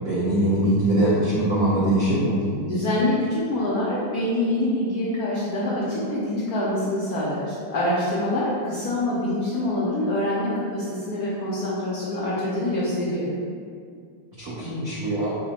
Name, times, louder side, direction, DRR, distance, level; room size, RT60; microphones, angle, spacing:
voice 1, 0.0-2.4 14.4-15.4, right 1 dB, 90° right, -7 dB, 0.7 m, -22 dB
voice 2, 2.6-13.3, left 1 dB, 85° left, -6 dB, 0.8 m, -25 dB
5.0 x 2.1 x 4.0 m, 2.2 s
omnidirectional pair, 2.4 m